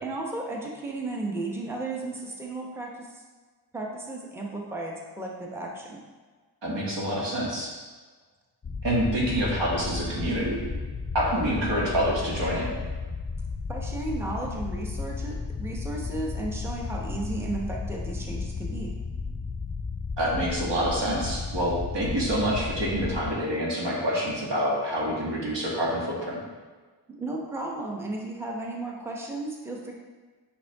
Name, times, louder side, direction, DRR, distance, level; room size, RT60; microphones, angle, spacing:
voice 1, 0.0-3.2 3.7-6.0 13.7-18.9 27.1-29.9, right 2 dB, 5° right, -1 dB, 0.9 m, -34 dB
voice 2, 6.6-7.7 8.8-10.6 11.1-12.8 20.2-26.4, equal, 70° right, -4 dB, 1.8 m, -27 dB
sound 1, 8.6-23.3, left 4 dB, 25° left, 0.6 m, -34 dB
6.7 x 5.4 x 3.5 m, 1.4 s
wide cardioid pair, 95°, 45 cm